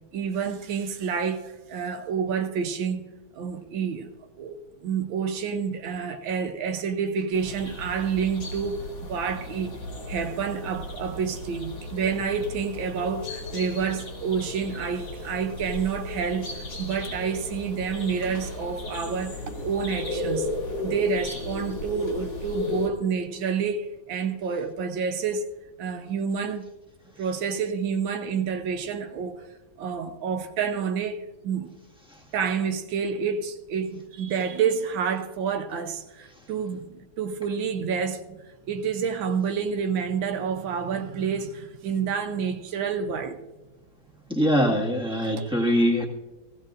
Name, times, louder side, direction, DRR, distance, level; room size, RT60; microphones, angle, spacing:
voice 1, 0.1-4.1 4.4-8.8 9.1-9.7 10.1-20.5 20.8-25.5 25.8-26.7 27.2-29.4 29.8-31.8 32.3-43.4 45.1-45.8, right 6 dB, 85° right, 1.5 m, -29 dB
sound 1, 7.3-22.9, left 2 dB, 85° left, 3.4 m, -35 dB
voice 2, 44.3-46.0, equal, 5° right, 1.5 m, -22 dB
17.5 x 15.5 x 2.5 m
omnidirectional pair, 2.1 m